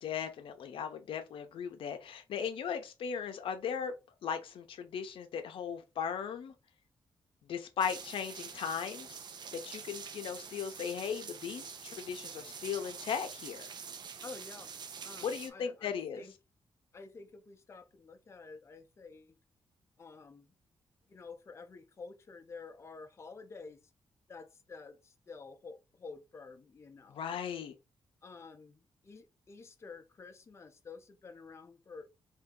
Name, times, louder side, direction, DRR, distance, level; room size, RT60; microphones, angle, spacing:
voice 1, 0.0-3.9 4.2-6.5 7.5-9.2 9.5-13.7 15.2-16.2 27.1-27.7, left 7 dB, 80° left, 0.5 m, -37 dB
sound 1, 7.8-15.5, right 6 dB, 55° right, 0.5 m, -46 dB
voice 2, 14.2-14.7 15.0-16.3 16.9-19.4 20.0-20.5 21.1-23.8 24.3-27.2 28.2-32.1, left 4 dB, 30° left, 0.5 m, -50 dB
2.8 x 2.6 x 3.6 m
cardioid pair, 115°, 9 cm